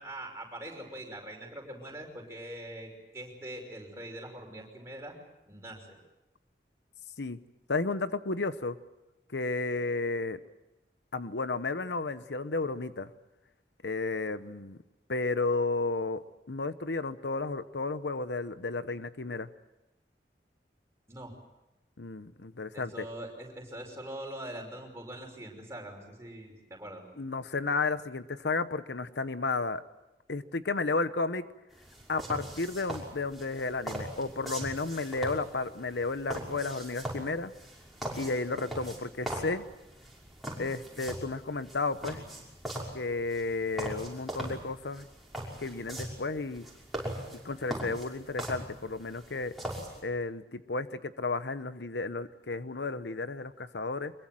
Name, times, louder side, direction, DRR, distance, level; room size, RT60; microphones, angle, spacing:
voice 1, 0.0-5.2 5.5-6.0 21.1-21.3 22.7-27.0, right 1 dB, 15° right, 1 dB, 5.6 m, -43 dB
voice 2, 7.7-8.8 9.3-10.4 11.1-13.1 13.8-14.8 15.1-16.2 16.5-19.5 22.0-23.1 27.2-29.8 30.3-31.5 32.1-37.5 38.2-39.6 40.6-42.2 42.9-45.1 45.6-46.7 47.3-49.5 50.0-54.1, left 3 dB, 85° left, 12 dB, 1.0 m, -32 dB
sound 1, 31.7-50.0, right 1 dB, ahead, 5.8 m, -41 dB
24.5 x 22.5 x 7.7 m, 0.96 s
head